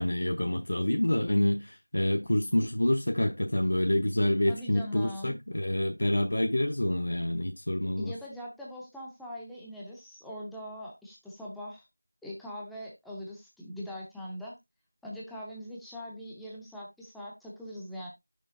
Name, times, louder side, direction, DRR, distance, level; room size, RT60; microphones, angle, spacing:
voice 1, 0.0-8.1, left 1 dB, 50° left, 0.8 m, -27 dB
voice 2, 4.5-5.4 8.0-11.8 12.2-14.6 15.0-18.1, left 1 dB, ahead, 0.5 m, -41 dB
8.1 x 6.5 x 2.6 m
figure-of-eight pair, 175°, 0 cm